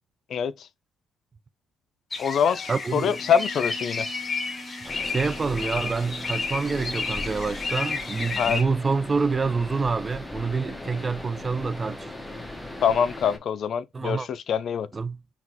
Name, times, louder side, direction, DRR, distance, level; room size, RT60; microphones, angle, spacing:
voice 1, 0.3-0.7 2.2-4.1 8.4-8.6 12.8-14.9, left 7 dB, 65° left, 0.3 m, -24 dB
sound 1, 2.1-8.6, left 4 dB, 35° left, 1.1 m, -32 dB
voice 2, 2.7-3.2 5.0-12.1 13.9-14.3 14.9-15.2, right 4 dB, 35° right, 0.3 m, -27 dB
sound 2, 2.9-8.4, right 1 dB, 65° right, 1.1 m, -44 dB
sound 3, 4.8-13.4, left 2 dB, 5° left, 1.0 m, -39 dB
5.7 x 2.3 x 2.8 m
supercardioid pair, 60°, 0 cm